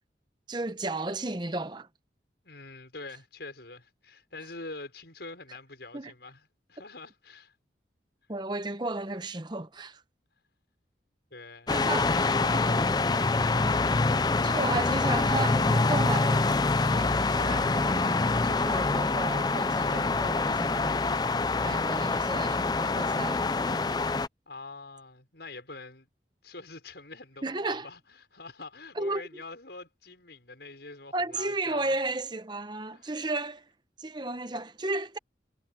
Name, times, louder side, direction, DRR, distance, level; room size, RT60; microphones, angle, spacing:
voice 1, 0.5-1.9 5.9-6.1 8.3-10.0 11.7-12.1 12.5-12.8 14.4-21.1 21.6-24.0 27.4-27.9 29.0-29.2 31.1-33.6 34.0-35.2, right 2 dB, 25° right, 0.9 m, -34 dB
voice 2, 2.4-7.5 11.3-14.2 24.5-26.1 26.4-32.0 32.9-33.2, left 3 dB, 70° left, 5.6 m, -45 dB
sound 1, 11.7-24.3, left 3 dB, 20° left, 0.4 m, -25 dB
head